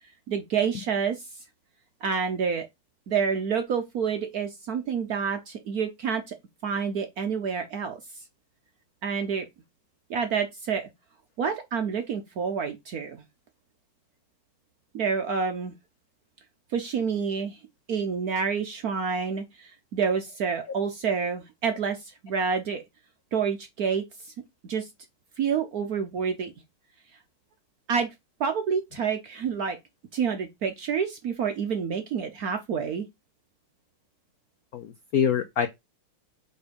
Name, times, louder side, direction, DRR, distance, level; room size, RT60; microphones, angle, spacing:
voice 1, 0.3-1.4 2.0-2.7 3.1-6.3 6.6-8.2 9.0-9.4 10.1-10.9 11.4-13.2 14.9-15.7 16.7-17.6 17.9-22.8 23.3-24.3 24.6-24.9 25.4-26.5 27.9-28.1 28.4-29.8 30.1-33.1, right 6 dB, 65° right, 0.9 m, -28 dB
voice 2, 34.7-35.7, left 7 dB, 80° left, 0.8 m, -25 dB
5.3 x 4.5 x 5.1 m
omnidirectional pair, 2.4 m